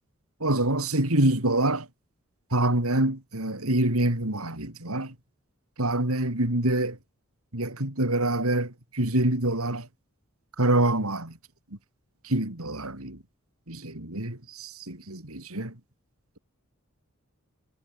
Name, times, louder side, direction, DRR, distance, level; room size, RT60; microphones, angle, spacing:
voice 1, 0.4-1.9 2.5-5.1 5.8-7.0 7.5-9.9 10.6-11.4 12.2-13.2 13.7-15.8, right 1 dB, 85° right, 4.7 m, -26 dB
head